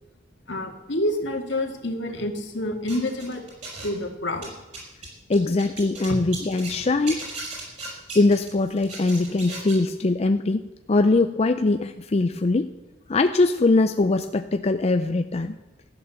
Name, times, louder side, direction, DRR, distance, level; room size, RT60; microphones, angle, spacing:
voice 1, 0.5-3.4 3.8-4.5 6.1-6.2, left 1 dB, 70° left, 3 dB, 2.0 m, -28 dB
sound 1, 2.9-4.0 4.3-6.8 7.1-9.8, right 2 dB, 40° right, 6.1 m, -36 dB
voice 2, 5.3-7.2 8.1-10.6 10.9-12.7 13.1-15.5, left 2 dB, 35° left, 8 dB, 0.4 m, -21 dB
14.5 x 9.1 x 7.0 m, 1.1 s
head